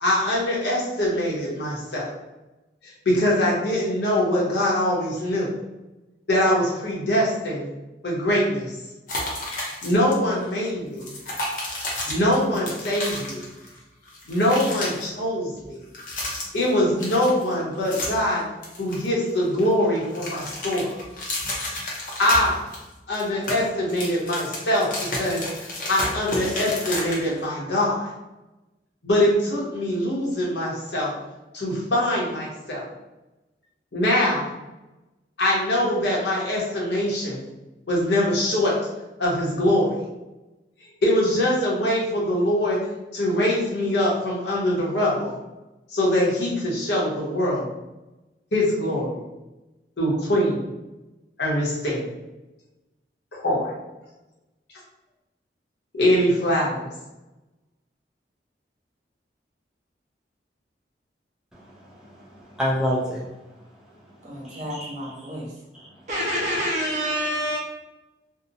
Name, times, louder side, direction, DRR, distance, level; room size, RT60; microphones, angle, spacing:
voice 1, 0.0-2.1 2.8-5.5 6.3-7.7 8.0-8.7 9.8-11.1 12.1-13.4 14.3-15.8 16.5-18.5 18.8-20.9 22.2-22.6 23.1-24.9 25.2-28.1 29.0-31.1 31.5-32.8 33.9-34.6 35.4-37.4 37.9-38.7 39.2-40.0 41.0-42.8 43.1-45.3 45.9-47.7 48.5-49.2 50.0-50.6 51.4-52.0 53.3-53.7 55.9-56.9, left 1 dB, 75° left, -4 dB, 0.8 m, -23 dB
sound 1, 9.1-10.1 10.4-10.5 11.0-13.8 14.0-15.1 15.8-16.7 17.0-18.3 18.6-19.6 19.9-22.8 23.1-27.4, left 1 dB, 50° left, 0.6 m, -31 dB
voice 2, 61.5-63.3 64.4-65.1 65.7-65.9 66.3-66.4, equal, 5° right, -6 dB, 0.4 m, -29 dB
voice 3, 64.2-65.5 66.1-67.6, equal, 45° right, -4 dB, 0.7 m, -28 dB
2.7 x 2.0 x 2.5 m, 1.0 s
head